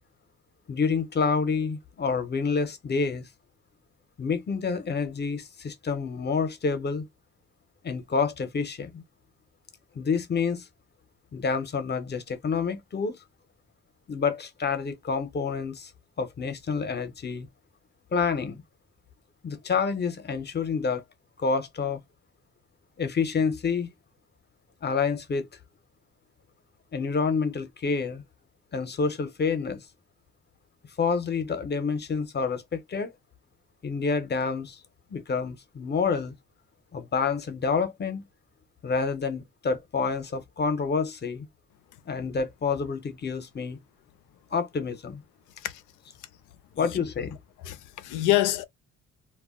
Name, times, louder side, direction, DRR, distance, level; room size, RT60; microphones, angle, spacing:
voice 1, 0.7-3.3 4.2-7.0 7.8-9.0 9.9-10.7 11.3-13.1 14.1-15.9 16.2-17.5 18.1-18.6 19.4-21.0 21.4-22.0 23.0-23.9 24.8-25.5 26.9-28.2 28.7-29.8 31.0-33.1 33.8-34.8 35.1-36.3 36.9-38.3 38.8-41.5 42.1-43.8 44.5-45.2 46.8-47.4, left 5 dB, 35° left, 0.7 m, -28 dB
voice 2, 47.6-48.6, left 15 dB, 85° left, 0.5 m, -26 dB
2.2 x 2.0 x 3.6 m
cardioid pair, 90°, 30 cm